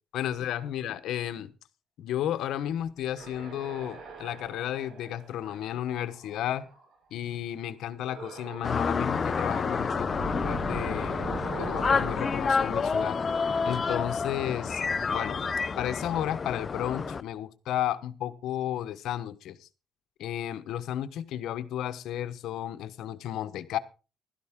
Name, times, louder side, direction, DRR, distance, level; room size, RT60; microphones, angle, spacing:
voice 1, 0.1-1.5 2.0-6.7 7.1-13.2 13.6-14.8 15.1-15.4 15.8-19.7 20.2-23.8, left 11 dB, 80° left, 1.1 m, -33 dB
sound 1, 3.1-6.9 8.0-8.8 9.1-14.0, right 3 dB, 75° right, 5.0 m, -42 dB
sound 2, 8.6-17.2, left 5 dB, 40° left, 0.7 m, -29 dB
15.5 x 13.0 x 3.7 m
cardioid pair, 90°, 0 cm